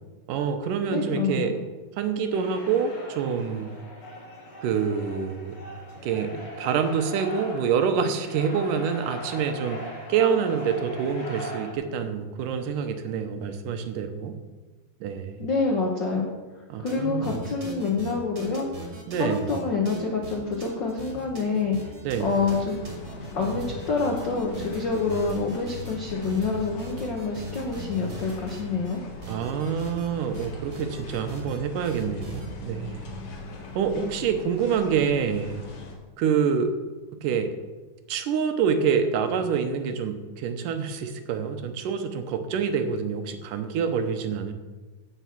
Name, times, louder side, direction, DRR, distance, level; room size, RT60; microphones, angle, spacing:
voice 1, 0.3-1.6 2.0-3.7 4.6-5.6 6.0-9.8 10.1-14.3 15.0-15.4 16.7-17.4 19.1-19.5 22.0-22.3 29.3-33.1 33.8-35.6 36.2-36.7 37.2-37.5 38.1-44.5, right 6 dB, 75° right, 7 dB, 2.3 m, -26 dB
voice 2, 0.9-1.5 15.4-16.3 16.8-18.9 19.2-21.9 22.2-22.8 23.3-29.0, left 4 dB, 75° left, 0 dB, 1.0 m, -27 dB
sound 1, 2.3-11.7, equal, 45° left, 3.0 m, -40 dB
sound 2, 16.9-17.0 17.2-29.0 29.2-30.1 30.3-31.6 31.8-32.5, right 2 dB, 35° right, 2.3 m, -39 dB
sound 3, 22.1-35.9, left 4 dB, 60° left, 3.0 m, -41 dB
16.5 x 5.5 x 5.9 m, 1.3 s
omnidirectional pair, 4.0 m